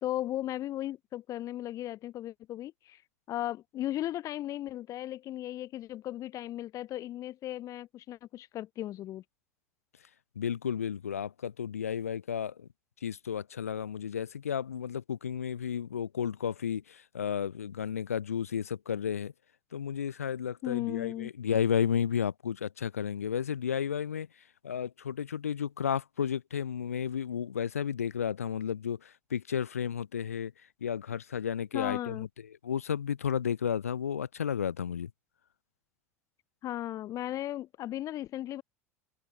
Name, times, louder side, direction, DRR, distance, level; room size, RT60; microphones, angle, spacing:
voice 1, 0.0-3.0 3.3-9.2 20.6-21.3 31.7-32.3 36.6-38.6, left 13 dB, 45° left, 2.2 m, -36 dB
voice 2, 10.4-12.7 13.0-19.3 19.7-24.3 24.6-30.5 30.8-32.3 32.6-35.1, left 8 dB, 90° left, 3.6 m, -32 dB
hypercardioid pair, 85°, 8 cm